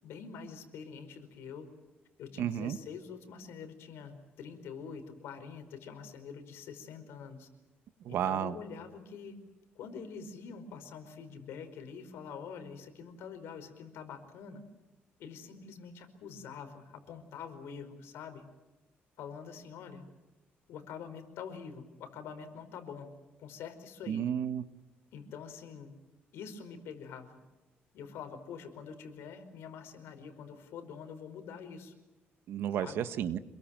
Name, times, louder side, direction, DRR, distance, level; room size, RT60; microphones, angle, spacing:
voice 1, 0.0-1.7 2.2-7.5 8.1-9.4 9.7-14.6 15.2-18.4 19.2-20.1 20.7-23.1 23.4-24.2 25.1-25.9 26.3-27.4 27.9-31.9 32.8-33.1, left 6 dB, 85° left, 8 dB, 4.9 m, -45 dB
voice 2, 2.4-2.8 8.0-8.5 24.1-24.6 32.5-33.4, right 10 dB, 70° right, 11 dB, 1.5 m, -32 dB
28.0 x 22.5 x 7.7 m, 1.1 s
cardioid pair, 150°, 4 cm